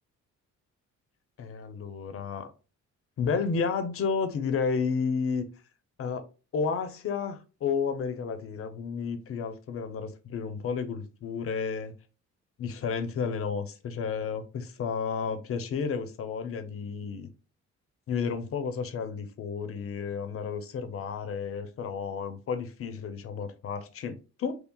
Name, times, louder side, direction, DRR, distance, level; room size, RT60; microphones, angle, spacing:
voice 1, 1.4-2.5 3.2-5.4 6.0-6.2 6.5-11.9 12.6-17.3 18.1-24.6, left 5 dB, 45° left, 0.6 m, -32 dB
5.6 x 2.0 x 2.2 m
cardioid pair, 135°, 30 cm